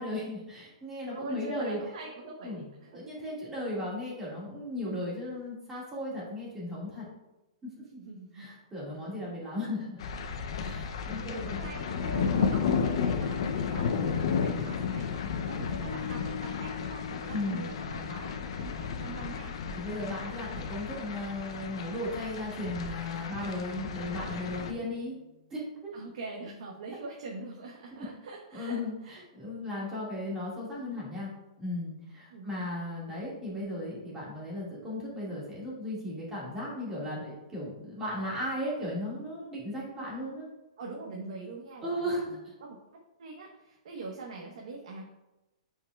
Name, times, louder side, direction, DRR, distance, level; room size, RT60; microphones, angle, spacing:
voice 1, 0.0-1.8 2.4-2.6 2.9-7.0 7.6-7.7 8.3-10.0 10.6-11.5 12.2-12.5 17.3-17.7 19.8-25.1 25.5-25.9 28.5-31.3 31.6-40.5 41.8-42.5, left 1 dB, 10° right, -6 dB, 1.8 m, -36 dB
voice 2, 1.1-2.9 3.2-3.3 8.0-8.5 11.1-19.7 25.9-29.2 32.3-32.5 40.8-42.3 42.6-42.8 43.2-45.0, right 3 dB, 60° right, -1 dB, 1.0 m, -43 dB
Rain on metal roof with distant thunder, 10.0-24.7, left 6 dB, 50° left, 0.5 m, -33 dB
sound 1, 15.8-25.5, left 9 dB, 25° left, 1.4 m, -47 dB
8.6 x 4.7 x 2.3 m, 0.98 s
hypercardioid pair, 170°, 4 cm